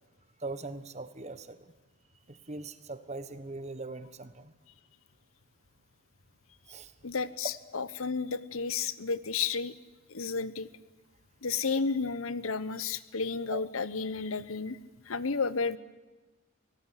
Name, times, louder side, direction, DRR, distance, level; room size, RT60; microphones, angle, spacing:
voice 1, 0.4-1.7 2.3-4.5 6.7-6.9 13.5-13.6, right 3 dB, 35° right, 12 dB, 1.3 m, -41 dB
voice 2, 7.0-9.7 10.1-10.7 11.4-14.8 15.1-15.8, left 5 dB, 85° left, 16 dB, 1.0 m, -32 dB
26.0 x 18.0 x 9.9 m, 1.2 s
head